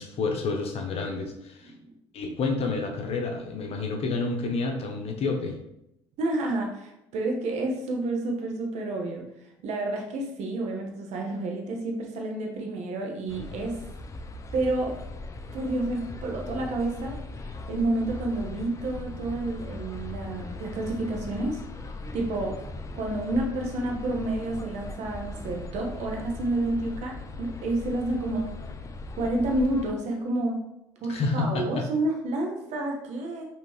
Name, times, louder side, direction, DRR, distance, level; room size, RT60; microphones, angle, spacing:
voice 1, 0.0-1.7 2.1-5.6 31.1-31.8, left 3 dB, 45° left, 3 dB, 0.9 m, -29 dB
voice 2, 6.2-9.3 9.6-13.8 14.5-14.9 15.5-17.2 17.7-21.6 22.1-22.6 22.9-28.5 29.2-30.6 31.0-33.5, right 2 dB, 55° right, 1 dB, 1.0 m, -29 dB
sound 1, 13.3-29.9, left 2 dB, 25° left, 0.5 m, -39 dB
5.2 x 3.0 x 3.1 m, 0.84 s
hypercardioid pair, 60°, 14 cm